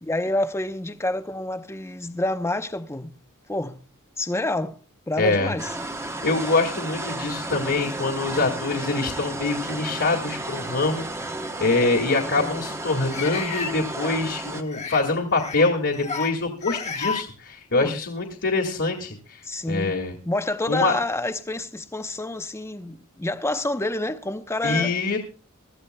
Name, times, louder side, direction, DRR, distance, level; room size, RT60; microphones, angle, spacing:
voice 1, 0.0-3.1 3.5-3.8 4.2-4.8 5.1-5.7 17.7-18.0 19.4-20.0 20.3-24.9, left 2 dB, 10° left, 0.7 m, -28 dB
voice 2, 5.2-5.5 6.2-11.1 11.6-20.2 20.7-20.9 24.6-25.2, left 3 dB, 60° left, 2.0 m, -24 dB
sound 1, 5.6-14.6, right 2 dB, 15° right, 1.0 m, -33 dB
sound 2, 10.9-11.0 13.1-13.7 14.7-15.0 15.3-15.7 15.9-16.3 16.6-17.2, left 5 dB, 30° left, 1.1 m, -31 dB
23.0 x 13.5 x 2.2 m
head